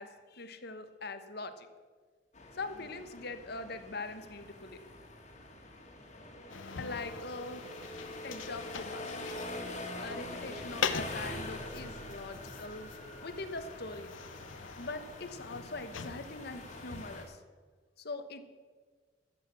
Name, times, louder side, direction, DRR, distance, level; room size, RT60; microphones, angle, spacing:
voice 1, 0.0-1.7 2.5-4.8 6.8-7.6 8.2-9.1 10.0-12.9 13.2-14.1 14.8-17.4 18.0-18.5, left 3 dB, 60° left, 9 dB, 1.1 m, -42 dB
sound 1, 2.3-17.2, left 2 dB, 40° left, 2.0 m, -45 dB
sound 2, 6.5-17.3, left 6 dB, 90° left, 0.7 m, -43 dB
13.5 x 8.2 x 7.1 m, 1.5 s
head